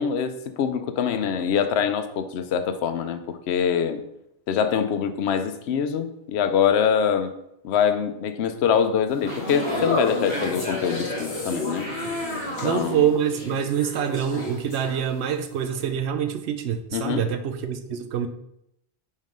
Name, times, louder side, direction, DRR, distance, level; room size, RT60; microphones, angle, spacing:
voice 1, 0.0-4.0 4.5-7.3 7.6-11.9 12.5-13.0 16.9-17.2, left 7 dB, 75° left, 9 dB, 0.8 m, -24 dB
sound 1, 9.1-15.3 15.6-15.9, left 2 dB, 50° left, 1.7 m, -31 dB
voice 2, 12.6-18.3, right 8 dB, 75° right, 8 dB, 0.9 m, -25 dB
5.5 x 3.7 x 5.1 m, 0.80 s
omnidirectional pair, 1.1 m